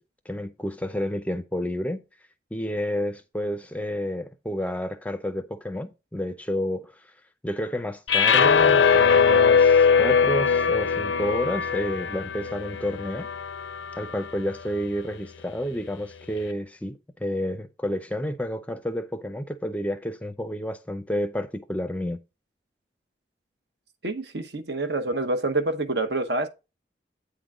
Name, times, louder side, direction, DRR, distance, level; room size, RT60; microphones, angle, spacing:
voice 1, 0.3-2.0 2.5-7.1 7.4-13.3 14.0-22.2, equal, 10° left, 0.5 m, -30 dB
sound 1, 8.1-14.3, left 6 dB, 85° left, 0.6 m, -21 dB
voice 2, 24.0-26.5, right 2 dB, 70° right, 0.9 m, -27 dB
8.5 x 3.8 x 4.8 m
head